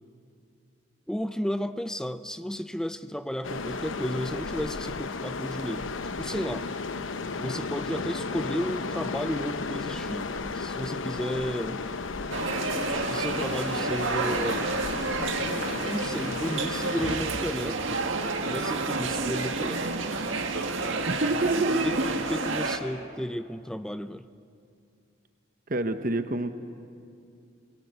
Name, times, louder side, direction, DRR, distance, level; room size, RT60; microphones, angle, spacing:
voice 1, 1.1-6.7 7.4-10.3 10.5-11.8 13.1-14.7 15.4-18.0 18.4-19.9 21.8-24.3, equal, 5° left, 12 dB, 0.5 m, -33 dB
sound 1, 3.4-17.2, left 4 dB, 85° left, 0.9 m, -34 dB
sound 2, 12.3-22.8, right 3 dB, 90° right, 1.8 m, -30 dB
voice 2, 21.1-22.4 25.7-26.6, right 2 dB, 45° right, 9 dB, 0.9 m, -27 dB
24.0 x 23.5 x 8.1 m, 2.4 s
head